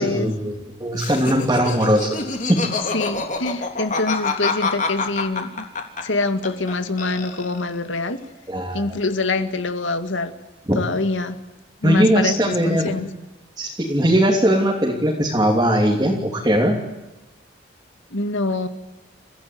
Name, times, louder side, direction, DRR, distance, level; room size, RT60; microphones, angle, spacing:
voice 1, 0.0-2.2 2.5-2.6 8.5-8.9 10.7-10.8 11.8-12.9 13.6-16.8, equal, 20° right, -1 dB, 3.0 m, -19 dB
Laughter, 0.9-6.7 7.0-7.8, left 4 dB, 40° left, 3.4 m, -26 dB
voice 2, 2.9-5.6 6.0-8.2 8.7-10.3 10.8-11.4 11.8-13.1 18.1-18.7, left 3 dB, 80° left, 9 dB, 2.2 m, -25 dB
30.0 x 15.5 x 9.5 m, 1.0 s
head